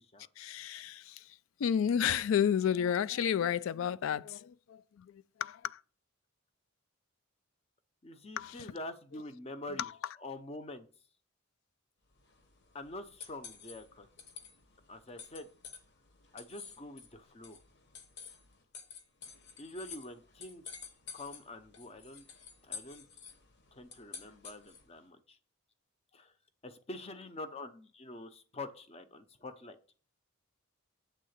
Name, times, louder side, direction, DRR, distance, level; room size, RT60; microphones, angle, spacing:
voice 1, 0.4-5.8 8.4-8.7 9.8-9.9, left 8 dB, 70° left, 0.3 m, -32 dB
voice 2, 8.0-9.9 10.2-10.9 12.7-14.1 14.9-15.5 16.3-17.6 19.6-20.6 21.1-22.2 22.6-23.0 23.7-25.4 26.1-26.3 26.6-29.8, left 2 dB, 30° left, 0.7 m, -46 dB
sound 1, 12.1-25.0, left 6 dB, 55° left, 1.0 m, -51 dB
7.8 x 3.7 x 6.5 m
head